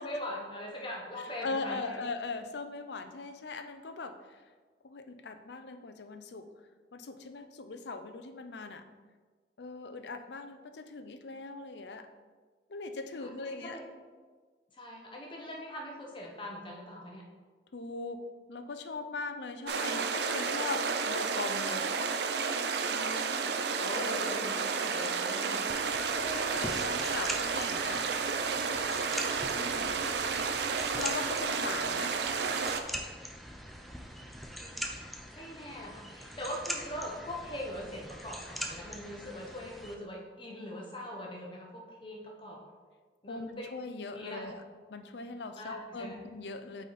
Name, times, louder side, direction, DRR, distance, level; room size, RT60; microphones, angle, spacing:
voice 1, 0.0-2.0 13.2-13.9 14.7-17.2 22.8-25.7 29.6-29.9 35.4-42.6 43.2-43.7 44.1-44.5 45.6-46.2, left 1 dB, 30° left, -1 dB, 0.9 m, -42 dB
voice 2, 1.2-4.4 4.8-6.5 6.9-8.9 9.6-12.1 12.7-13.8 17.7-21.9 23.9-24.6 26.1-28.1 29.5-29.9 30.9-32.2 43.3-44.6 44.9-46.8, left 3 dB, 75° left, 8 dB, 0.5 m, -40 dB
sound 1, 19.7-32.8, right 5 dB, 70° right, 0.5 m, -31 dB
sound 2, 25.7-39.9, equal, ahead, 0.5 m, -42 dB
8.2 x 4.1 x 4.0 m, 1.5 s
head